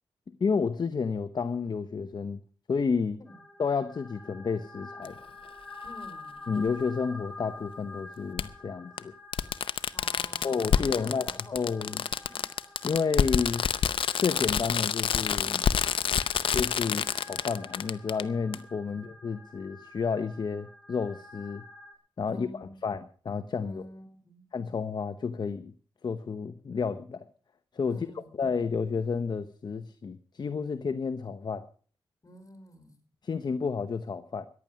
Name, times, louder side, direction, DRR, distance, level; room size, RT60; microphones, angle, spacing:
voice 1, 0.4-2.4 2.7-3.2 3.6-5.2 6.5-9.1 10.4-12.1 12.8-13.7 14.2-15.6 16.5-21.6 22.2-23.8 24.5-25.7 26.0-27.2 27.7-31.6 33.2-34.5, left 5 dB, 55° left, 0.9 m, -31 dB
sound 1, 3.3-21.9, left 2 dB, 10° left, 4.2 m, -49 dB
Fireworks, 5.1-5.2 6.7-6.8 8.4-8.5 9.0-9.1 9.3-18.2 18.5-18.6, left 8 dB, 85° left, 0.7 m, -27 dB
voice 2, 5.8-6.5 9.9-12.0 12.3-12.6 18.8-19.0 22.2-22.8 23.6-24.5 27.8-28.4 32.2-33.0, left 1 dB, 40° left, 4.5 m, -49 dB
14.5 x 10.5 x 6.3 m
cardioid pair, 80°, 9 cm